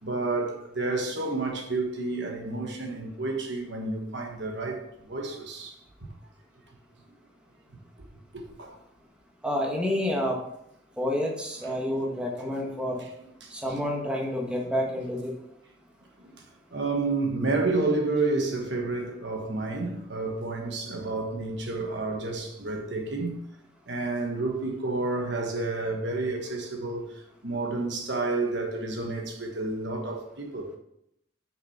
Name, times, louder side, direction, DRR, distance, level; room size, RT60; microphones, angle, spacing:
voice 1, 0.0-5.7 8.3-8.7 11.6-11.8 13.4-13.5 16.7-23.4 23.9-27.0 27.4-30.7, right 3 dB, 60° right, 1.5 m, -30 dB
voice 2, 9.4-10.4 11.0-13.0 13.5-15.3, left 1 dB, 5° right, 1.3 m, -29 dB
6.5 x 6.2 x 5.8 m
head